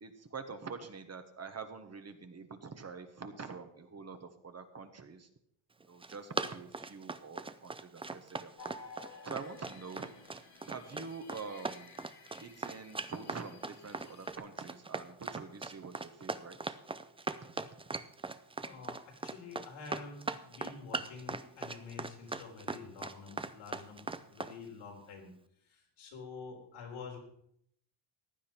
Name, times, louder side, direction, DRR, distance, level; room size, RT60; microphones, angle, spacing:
voice 1, 0.0-5.3 5.8-8.8 9.2-10.1 10.7-12.0 12.4-16.6, right 5 dB, 30° right, 8 dB, 1.3 m, -46 dB
Run, 5.8-24.5, right 3 dB, 10° right, 0.4 m, -39 dB
sound 1, 8.6-14.3, left 4 dB, 50° left, 2.0 m, -54 dB
voice 2, 18.6-25.3 25.7-27.2, left 5 dB, 85° left, 0 dB, 4.0 m, -48 dB
15.5 x 10.5 x 4.5 m, 0.71 s
cardioid pair, 125°, 48 cm